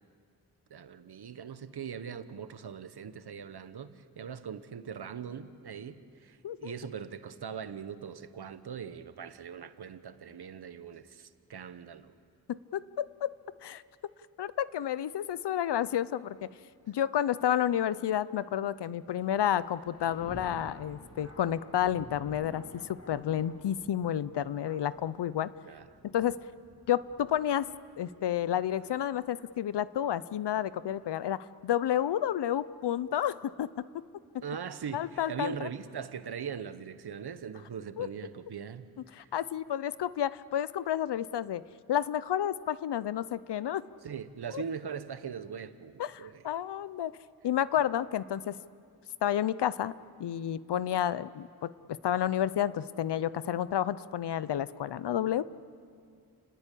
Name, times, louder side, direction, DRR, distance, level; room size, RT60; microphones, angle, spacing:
voice 1, 0.7-12.1 25.7-26.0 34.4-39.3 44.0-46.5, right 7 dB, 70° right, 11 dB, 1.2 m, -41 dB
voice 2, 12.5-13.3 13.6-13.8 14.4-16.5 16.9-25.5 26.0-26.4 26.9-27.7 28.0-33.7 34.9-35.7 38.0-38.1 39.2-41.6 41.9-43.8 44.5-44.6 46.0-47.1 47.4-48.6 49.2-49.9 50.2-55.4, left 10 dB, 85° left, 17 dB, 0.7 m, -30 dB
Thunder, 19.2-29.1 29.9-30.0 31.0-31.2 31.9-32.1, left 1 dB, 35° left, 6.1 m, -52 dB
29.5 x 20.0 x 8.5 m, 2.3 s
cardioid pair, 70°, 40 cm